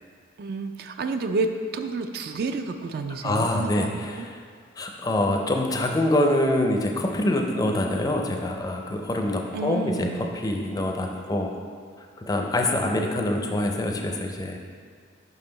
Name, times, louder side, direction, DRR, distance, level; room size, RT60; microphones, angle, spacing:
voice 1, 0.4-4.3 9.5-10.3, right 3 dB, 55° right, 7 dB, 0.3 m, -30 dB
voice 2, 3.2-4.4 4.8-11.6 12.2-14.6, left 1 dB, 20° left, 2 dB, 0.4 m, -25 dB
5.6 x 5.4 x 3.9 m, 2.1 s
head